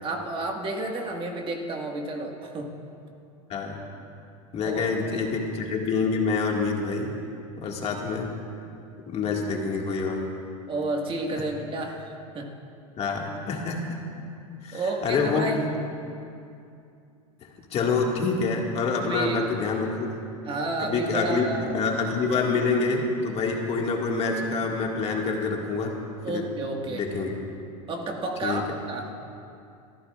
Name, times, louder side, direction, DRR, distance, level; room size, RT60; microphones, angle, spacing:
voice 1, 0.0-2.7 4.6-4.8 10.7-12.5 14.7-15.6 19.0-19.4 20.4-21.7 26.2-27.1 27.9-29.1, right 2 dB, 30° right, 1 dB, 1.8 m, -31 dB
voice 2, 3.5-3.8 4.5-7.1 7.6-8.3 9.1-10.3 13.0-14.0 14.6-15.5 17.7-20.1 20.8-25.9 26.3-26.4 26.8-27.3 28.4-28.6, left 4 dB, 35° left, 0 dB, 2.0 m, -26 dB
26.5 x 14.0 x 2.5 m, 2.5 s
hypercardioid pair, 105°, 18 cm